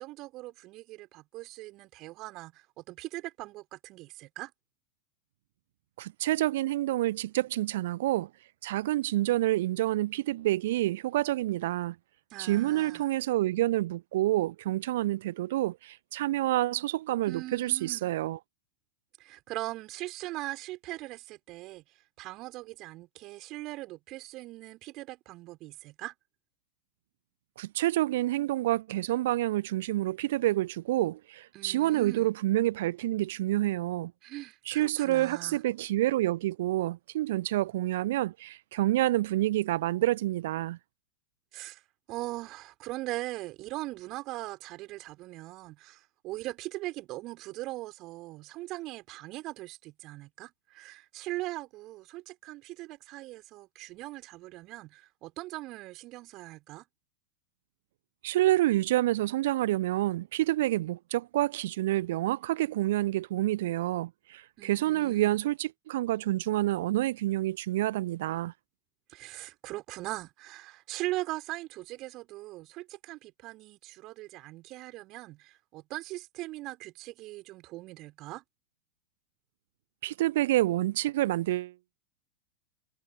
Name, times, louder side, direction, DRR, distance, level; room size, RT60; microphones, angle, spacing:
voice 1, 0.0-4.5 12.3-13.0 17.3-18.1 19.2-21.8 22.2-26.1 31.5-32.3 34.2-35.6 41.5-41.8 42.1-56.9 64.6-65.4 69.1-78.4, right 18 dB, 40° right, 5.5 m, -40 dB
voice 2, 6.0-8.3 8.6-12.0 12.4-18.4 27.6-34.1 34.7-40.8 58.2-68.5 80.0-81.7, right 15 dB, 55° right, 0.9 m, -28 dB
figure-of-eight pair, 90°, 0 cm